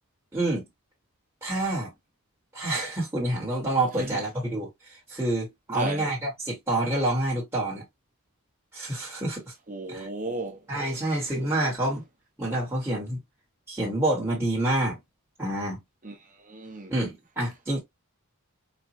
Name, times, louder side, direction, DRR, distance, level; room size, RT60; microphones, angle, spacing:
voice 1, 0.3-0.6 1.4-1.9 2.5-4.7 5.1-7.8 8.7-9.5 9.9-10.1 10.7-12.0 12.4-13.2 13.7-15.0 15.4-15.8 16.9-17.8, right 1 dB, 10° right, 1.2 m, -27 dB
voice 2, 5.7-6.1 9.7-10.7 10.9-11.5 16.0-16.9, right 2 dB, 35° right, 0.8 m, -36 dB
4.1 x 2.2 x 2.5 m
head